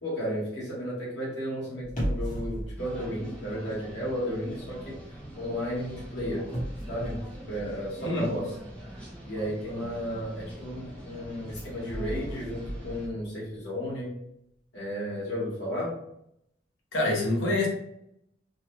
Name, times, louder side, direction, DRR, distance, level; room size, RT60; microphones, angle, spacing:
voice 1, 0.0-6.4 6.9-8.6 9.2-14.1 14.7-15.9, equal, 65° left, -7 dB, 1.3 m, -33 dB
sound 1, 1.8-4.1 4.4-4.7 6.0-8.2 11.5-13.4 13.6-13.7, equal, 40° left, 1.0 m, -36 dB
sound 2, 2.8-13.1, equal, 5° left, 1.0 m, -44 dB
voice 2, 16.9-17.7, left 2 dB, 80° left, -2 dB, 0.9 m, -26 dB
3.0 x 2.4 x 3.0 m, 0.77 s
head